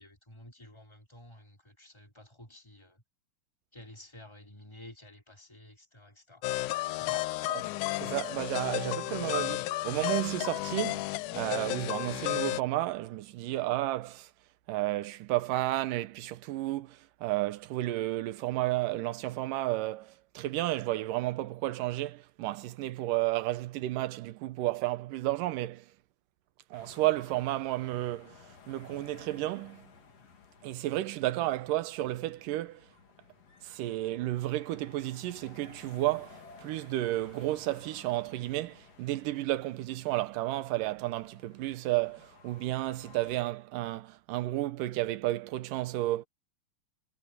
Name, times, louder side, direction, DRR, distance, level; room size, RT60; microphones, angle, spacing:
voice 1, 0.0-3.0 3.7-6.4 7.0-7.4, left 1 dB, 10° left, 2.8 m, -51 dB
sound 1, 6.4-12.6, left 17 dB, 80° left, 1.8 m, -33 dB
voice 2, 8.0-14.3 14.7-25.9 26.7-29.9 30.6-32.9 33.6-46.2, right 16 dB, 75° right, 2.4 m, -32 dB
sound 2, 26.7-43.4, left 5 dB, 50° left, 3.4 m, -56 dB
omnidirectional pair, 4.1 m